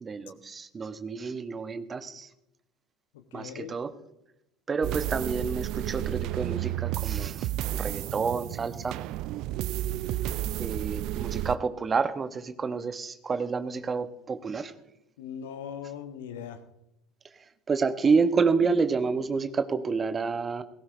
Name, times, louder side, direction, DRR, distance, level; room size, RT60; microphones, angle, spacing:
voice 1, 0.0-2.3 3.3-3.9 4.7-7.5 7.7-9.0 10.6-14.7 17.7-20.6, right 5 dB, 25° right, 11 dB, 0.9 m, -29 dB
voice 2, 3.1-3.8 15.2-16.6, left 8 dB, 65° left, 9 dB, 1.0 m, -40 dB
sound 1, 4.8-11.6, right 14 dB, 50° right, 0.4 m, -32 dB
18.5 x 16.5 x 2.5 m, 0.86 s
figure-of-eight pair, 65°, 0 cm